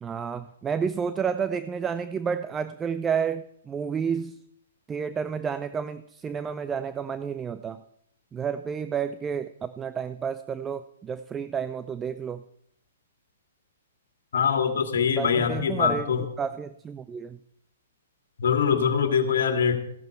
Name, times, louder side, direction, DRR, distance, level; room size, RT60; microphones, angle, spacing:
voice 1, 0.0-4.4 4.9-7.8 8.3-12.4 15.1-16.1 16.4-17.4, right 7 dB, 15° right, 13 dB, 0.4 m, -30 dB
voice 2, 14.3-16.2 18.4-19.7, left 7 dB, 65° left, 5 dB, 2.1 m, -23 dB
14.5 x 12.0 x 4.5 m, 0.76 s
hypercardioid pair, 125°, 0 cm